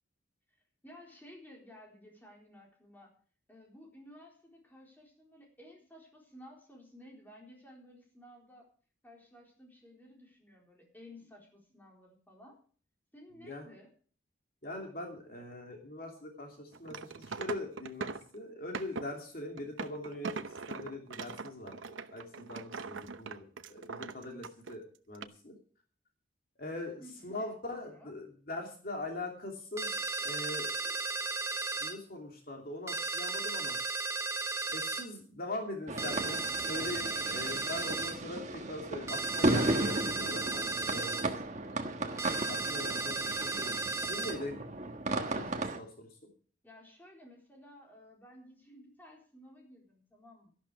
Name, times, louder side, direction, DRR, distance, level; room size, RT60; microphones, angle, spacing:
voice 1, 0.8-3.1 3.5-8.7 9.0-12.6 13.1-13.9 27.0-28.1 46.6-50.5, left 1 dB, 10° left, -1 dB, 4.0 m, -55 dB
voice 2, 13.4-13.7 14.6-20.3 20.7-25.5 26.6-30.9 31.8-33.8 34.7-41.2 42.5-43.8 44.0-44.6 45.1-46.1, left 2 dB, 45° left, 1 dB, 2.8 m, -42 dB
sound 1, 16.7-18.3 18.7-19.1 19.6-24.8 25.1-25.2, right 4 dB, 75° right, 0.9 m, -41 dB
sound 2, 29.8-32.0 32.9-35.1 36.0-38.2 39.1-41.3 42.2-44.4, right 3 dB, 15° right, 1.1 m, -35 dB
sound 3, 35.9-45.8, right 1 dB, 35° right, 1.4 m, -35 dB
13.0 x 12.0 x 4.9 m, 0.43 s
head